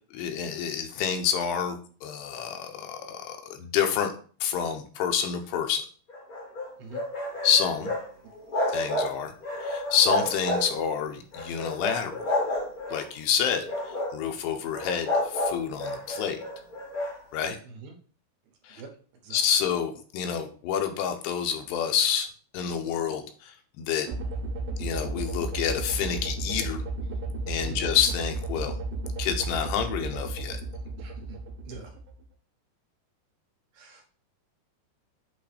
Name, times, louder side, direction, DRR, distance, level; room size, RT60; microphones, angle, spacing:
voice 1, 0.1-4.1 4.4-5.8 7.4-7.9 8.7-9.3 9.6-12.3 12.9-16.4 17.3-17.6 18.6-18.8 19.3-22.3 22.5-24.1 24.8-26.8 27.5-28.7 29.2-30.6, left 8 dB, 85° left, 6 dB, 3.0 m, -28 dB
sound 1, 6.1-8.1 8.3-9.1 9.4-10.9 11.3-13.0 13.6-14.2 14.7-17.1, left 1 dB, 50° left, 1.0 m, -30 dB
voice 2, 6.8-7.0 17.6-17.9 18.7-18.9 19.2-19.4 27.7-27.9 31.0-31.1 31.6-31.9 33.7-34.0, right 4 dB, 70° right, 1 dB, 2.9 m, -44 dB
sound 2, 24.1-32.3, right 2 dB, 85° right, 3.1 m, -33 dB
8.4 x 3.1 x 5.0 m, 0.42 s
omnidirectional pair, 4.8 m